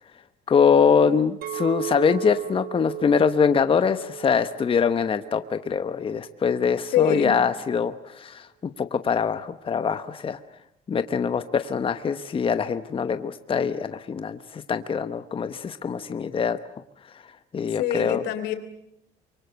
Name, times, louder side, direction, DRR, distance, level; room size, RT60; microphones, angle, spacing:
voice 1, 0.5-8.5 8.8-10.4 10.9-16.6 17.5-18.2, left 6 dB, 30° left, 10 dB, 1.0 m, -23 dB
Chink clink, 1.4-5.7 6.2-6.6, right 16 dB, 65° right, 1.5 m, -36 dB
voice 2, 6.9-7.4 17.8-18.5, left 10 dB, 85° left, 9 dB, 3.4 m, -24 dB
25.5 x 23.5 x 8.0 m, 0.73 s
cardioid pair, 110°, 17 cm